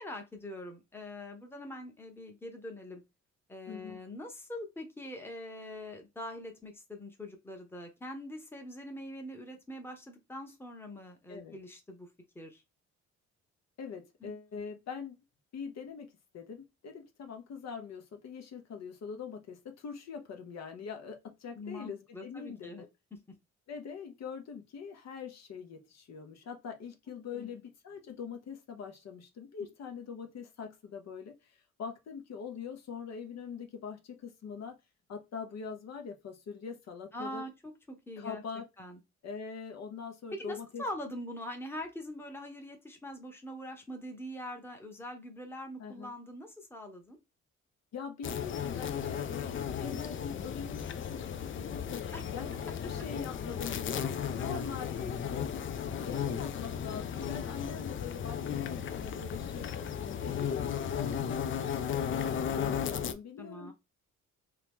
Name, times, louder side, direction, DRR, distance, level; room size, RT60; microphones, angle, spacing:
voice 1, 0.0-3.0 3.5-12.1 12.3-12.6 14.2-14.3 21.5-22.8 27.3-27.6 37.1-38.4 38.8-39.0 40.3-47.2 52.1-52.2 53.7-54.1 54.4-54.7 60.0-60.5 63.4-63.7, left 1 dB, 10° left, 0.9 m, -43 dB
voice 2, 3.7-4.0 11.3-11.5 13.8-15.2 15.5-22.9 23.7-34.8 35.1-37.4 38.2-38.7 39.2-40.9 45.8-46.1 47.9-52.0 52.3-52.6 52.8-55.5 56.0-59.9 60.2-63.7, left 6 dB, 60° left, 0.9 m, -43 dB
sound 1, 48.2-63.1, left 8 dB, 40° left, 0.5 m, -35 dB
2.9 x 2.9 x 3.4 m
cardioid pair, 90°, 30 cm